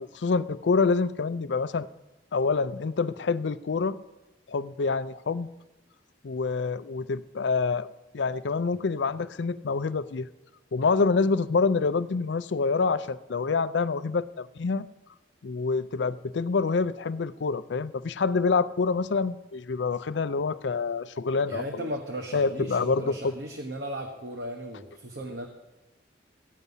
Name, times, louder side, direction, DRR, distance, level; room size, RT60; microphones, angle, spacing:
voice 1, 0.0-1.9 2.3-4.0 4.5-5.5 6.2-7.9 8.1-10.3 10.7-14.9 15.4-21.9 22.3-23.3, left 4 dB, 75° left, 15 dB, 0.5 m, -26 dB
voice 2, 21.5-25.5, equal, 70° right, 3 dB, 1.2 m, -36 dB
15.5 x 9.3 x 5.6 m, 1.0 s
head